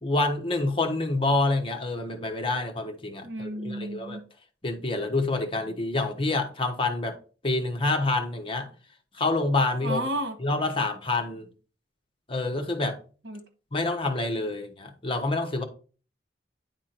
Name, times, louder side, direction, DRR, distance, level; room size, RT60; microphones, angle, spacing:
voice 1, 0.0-4.2 4.6-7.2 7.4-8.7 9.2-10.0 10.4-11.5 12.3-13.0 13.7-15.6, left 2 dB, 30° left, 1.1 m, -27 dB
voice 2, 3.2-4.2 9.8-10.4 13.2-13.4, right 1 dB, 85° right, 1.7 m, -32 dB
9.9 x 3.6 x 4.5 m
head